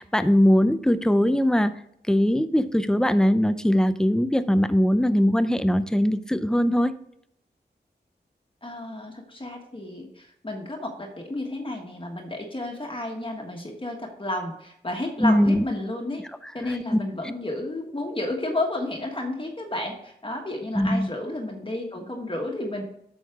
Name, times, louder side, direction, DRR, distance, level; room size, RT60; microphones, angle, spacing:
voice 1, 0.0-1.7 2.1-6.9 15.2-15.7 16.9-17.0 20.8-21.1, equal, 5° left, 11 dB, 0.6 m, -21 dB
voice 2, 8.6-16.2 16.5-22.8, left 1 dB, 30° left, 0 dB, 1.5 m, -32 dB
9.2 x 6.4 x 3.6 m, 0.73 s
wide cardioid pair, 75°, 18 cm